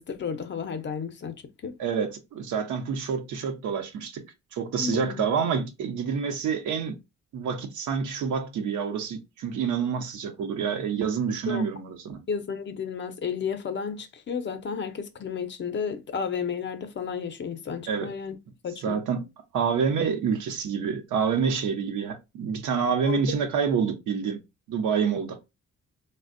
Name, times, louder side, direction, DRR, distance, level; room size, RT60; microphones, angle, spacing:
voice 1, 0.0-1.3 1.6-1.8 4.8-5.2 11.5-11.7 12.3-18.4 18.6-19.0 23.1-23.4, left 6 dB, 40° left, 0.5 m, -32 dB
voice 2, 1.8-4.2 4.5-7.0 7.3-12.2 17.9-18.1 18.8-19.2 19.5-24.4 24.7-25.4, right 6 dB, 75° right, 0.7 m, -27 dB
3.3 x 2.1 x 2.5 m
cardioid pair, 90°, 30 cm